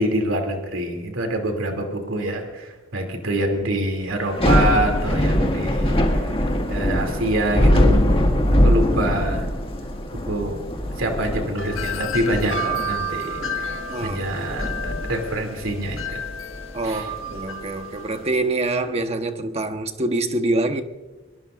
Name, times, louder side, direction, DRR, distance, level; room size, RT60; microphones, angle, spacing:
voice 1, 0.0-6.0 6.7-8.0 8.6-9.5 10.1-10.6 11.0-16.3 16.8-17.1, right 1 dB, 80° right, 2.9 m, -26 dB
Thunder / Rain, 4.2-17.4, equal, 30° left, 2.0 m, -22 dB
Wind chime, 11.6-18.3, equal, 80° left, 1.5 m, -31 dB
voice 2, 13.9-14.2 16.7-20.8, right 2 dB, 30° right, 1.3 m, -25 dB
23.0 x 22.5 x 2.6 m
head